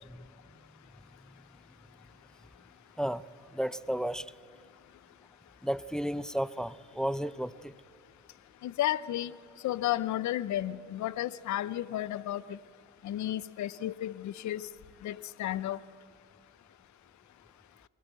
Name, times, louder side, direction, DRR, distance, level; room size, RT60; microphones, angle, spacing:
voice 1, 3.5-4.3 5.6-7.7, equal, ahead, 0.5 m, -33 dB
voice 2, 8.6-9.3 9.6-12.6 13.0-14.7 15.0-15.8, left 13 dB, 70° left, 0.7 m, -33 dB
23.0 x 20.0 x 7.9 m
cardioid pair, 90°, 30 cm